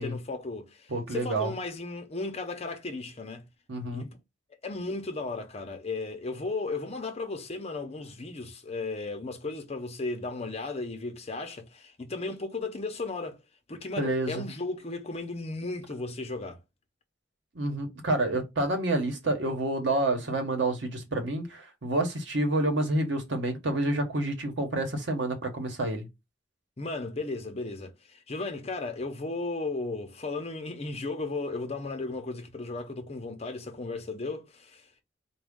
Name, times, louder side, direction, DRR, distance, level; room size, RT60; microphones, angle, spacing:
voice 1, 0.0-3.4 3.9-4.2 4.6-13.4 13.7-16.6 26.8-35.0, left 3 dB, 35° left, 0.7 m, -35 dB
voice 2, 0.9-1.5 3.7-4.1 14.0-14.4 17.5-26.1, right 2 dB, 80° right, 1.0 m, -28 dB
4.2 x 2.3 x 3.6 m
head